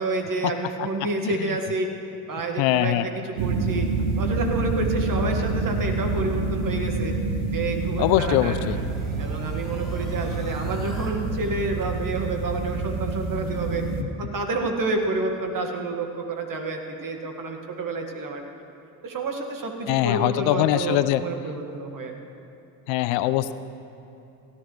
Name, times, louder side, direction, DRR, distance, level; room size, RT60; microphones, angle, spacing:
voice 1, 0.0-1.9 2.3-3.1 3.4-3.9 4.2-7.1 7.5-8.8 9.2-13.8 14.2-18.4 19.0-22.1, right 3 dB, 45° right, 3 dB, 2.0 m, -29 dB
voice 2, 2.6-3.1 8.0-8.8 19.9-21.2 22.9-23.5, left 14 dB, 70° left, 13 dB, 0.6 m, -22 dB
sound 1, 3.4-14.0, right 3 dB, 70° right, 1.1 m, -27 dB
sound 2, 7.3-11.1, left 1 dB, ahead, 3.3 m, -48 dB
16.5 x 11.0 x 3.3 m, 2.8 s
hypercardioid pair, 65°, 47 cm